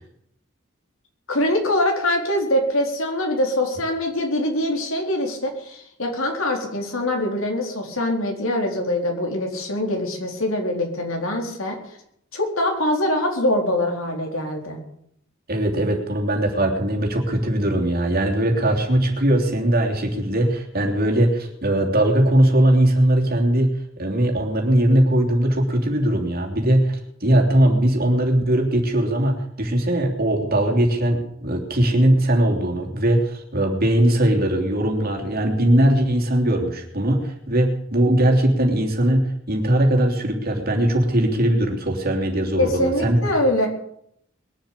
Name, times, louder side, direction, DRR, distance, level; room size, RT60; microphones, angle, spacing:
voice 1, 1.3-11.8 12.3-14.8 42.6-43.7, left 1 dB, 90° left, 1 dB, 4.2 m, -23 dB
voice 2, 15.5-43.2, right 1 dB, 50° right, 2 dB, 3.2 m, -20 dB
21.5 x 7.4 x 8.4 m, 0.71 s
head